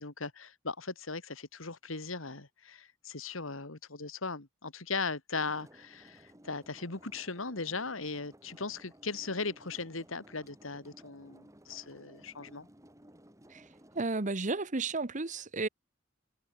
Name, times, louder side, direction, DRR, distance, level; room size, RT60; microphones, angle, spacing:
voice 1, 0.0-12.7, left 4 dB, 75° left, 2.5 m, -38 dB
sound 1, 5.3-14.0, right 1 dB, 15° right, 3.8 m, -57 dB
voice 2, 13.9-15.7, right 3 dB, 40° right, 1.1 m, -33 dB
head